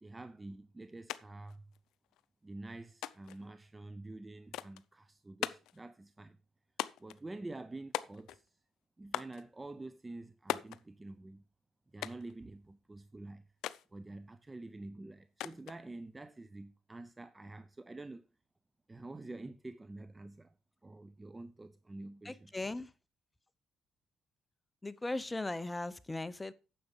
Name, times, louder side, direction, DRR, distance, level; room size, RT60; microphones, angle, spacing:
voice 1, 0.0-1.7 2.4-6.4 7.0-8.6 9.0-11.4 11.9-13.4 13.9-18.3 18.9-20.5 20.8-22.5, right 2 dB, 20° right, 0.7 m, -48 dB
sound 1, 1.1-1.2 1.5-2.2 3.0-3.4 4.5-4.9 5.4-5.8 6.8-7.2 7.9-8.5 9.1-9.4 10.5-10.8 12.0-12.3 13.6-13.9 15.4-15.8, left 13 dB, 85° left, 0.5 m, -39 dB
voice 2, 22.2-22.9 24.8-26.5, left 2 dB, 15° left, 0.8 m, -38 dB
9.7 x 6.8 x 5.2 m
cardioid pair, 90°, 0 cm